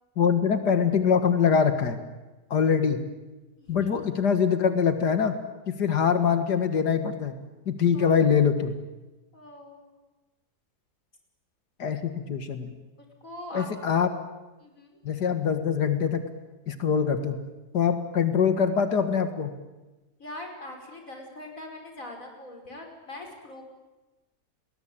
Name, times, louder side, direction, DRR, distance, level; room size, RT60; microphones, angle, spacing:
voice 1, 0.2-2.0 2.5-3.0 3.7-5.4 5.7-7.3 7.7-8.8 11.8-12.8 13.5-14.1 15.0-16.2 16.7-17.4 17.7-19.5, left 6 dB, 90° left, 8 dB, 2.3 m, -23 dB
voice 2, 3.6-3.9 7.9-8.3 9.3-10.0 13.2-13.7 14.6-14.9 20.2-23.6, left 1 dB, 55° left, 3 dB, 5.9 m, -42 dB
30.0 x 21.0 x 8.9 m, 1.1 s
omnidirectional pair, 1.7 m